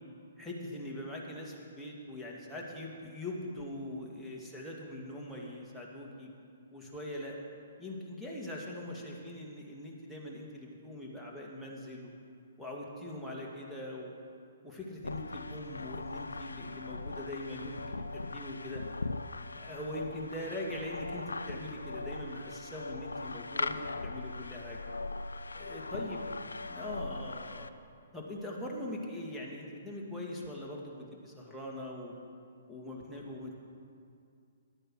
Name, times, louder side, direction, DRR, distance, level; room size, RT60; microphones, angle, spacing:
voice 1, 0.4-6.3 6.7-7.4 7.8-12.1 12.6-14.1 14.6-18.8 19.4-24.8 25.6-26.2 26.6-27.7 28.1-32.1 32.7-33.6, left 1 dB, ahead, -5 dB, 2.0 m, -42 dB
sound 1, 15.0-27.7, left 3 dB, 85° left, 0.4 m, -40 dB
12.0 x 8.8 x 6.2 m, 2.4 s
hypercardioid pair, 130°, 0 cm